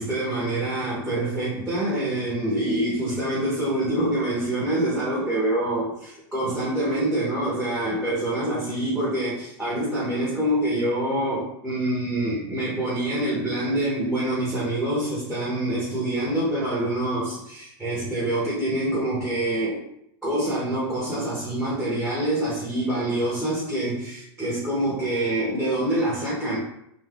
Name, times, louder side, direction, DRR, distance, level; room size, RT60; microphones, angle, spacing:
voice 1, 0.0-19.8 20.2-26.6, right 1 dB, ahead, -8 dB, 0.8 m, -26 dB
3.3 x 2.6 x 2.4 m, 0.76 s
supercardioid pair, 155°, 14 cm